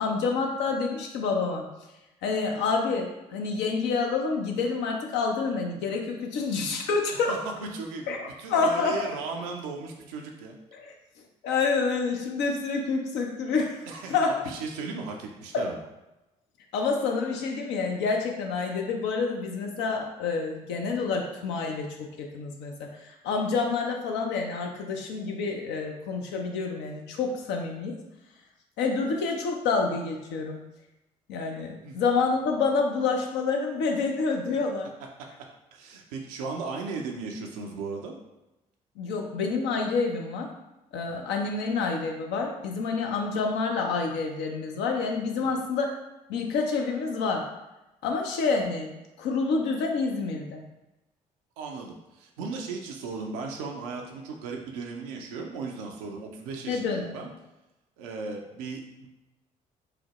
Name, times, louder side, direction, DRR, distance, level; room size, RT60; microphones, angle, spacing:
voice 1, 0.0-1.6 2.2-7.3 8.1-9.1 10.7-10.9 11.4-13.8 14.1-14.4 15.5-15.6 16.7-28.0 28.8-30.6 31.3-34.9 39.0-40.5 40.9-46.0 46.3-47.5 48.0-50.6 56.7-57.2, left 4 dB, 65° left, 2 dB, 0.7 m, -28 dB
voice 2, 7.3-10.6 13.9-15.8 31.8-32.0 35.7-38.1 45.4-45.6 51.6-57.3 58.0-59.1, right 4 dB, 75° right, 1 dB, 0.6 m, -36 dB
4.8 x 2.1 x 3.0 m, 0.97 s
hypercardioid pair, 50°, 19 cm